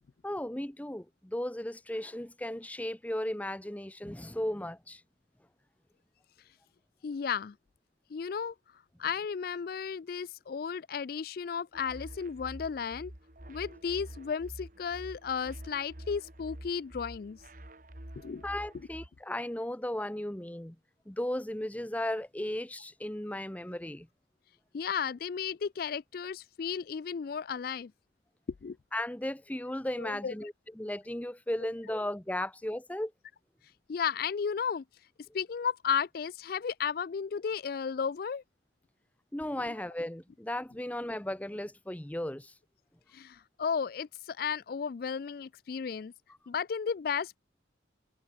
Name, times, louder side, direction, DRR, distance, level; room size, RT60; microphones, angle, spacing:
voice 1, 0.2-5.0 18.4-20.8 21.1-24.1 28.9-33.1 39.3-42.5, left 1 dB, 10° left, 0.7 m, -36 dB
voice 2, 7.0-7.5 8.1-8.5 9.0-13.1 13.5-17.4 18.2-18.4 24.7-27.9 28.6-28.8 30.0-30.3 33.9-34.8 35.3-38.4 39.7-39.8 43.1-46.1 46.5-47.4, left 6 dB, 50° left, 0.4 m, -34 dB
sound 1, 11.7-19.1, right 1 dB, 45° right, 2.8 m, -47 dB
head